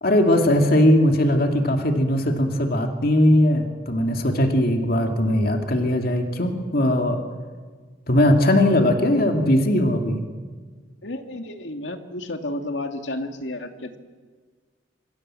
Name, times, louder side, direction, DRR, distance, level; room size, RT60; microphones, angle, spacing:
voice 1, 0.0-7.2 8.1-10.2, left 1 dB, 55° left, 4 dB, 2.5 m, -19 dB
voice 2, 11.0-14.0, left 1 dB, 85° left, 6 dB, 2.4 m, -32 dB
26.5 x 25.5 x 7.7 m, 1.5 s
head